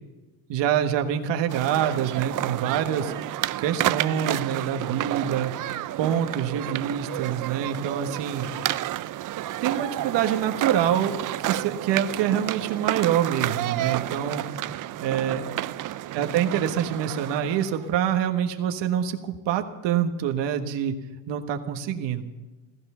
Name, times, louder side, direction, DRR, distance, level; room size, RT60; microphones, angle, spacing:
voice 1, 0.5-5.5 6.0-8.5 9.6-14.4 15.0-15.5 16.1-21.0 21.3-22.3, right 9 dB, 70° right, 5 dB, 1.5 m, -26 dB
sound 1, 1.5-17.9, right 14 dB, 45° right, 0.5 m, -30 dB
15.5 x 14.5 x 5.6 m, 1.2 s
cardioid pair, 100°, 45 cm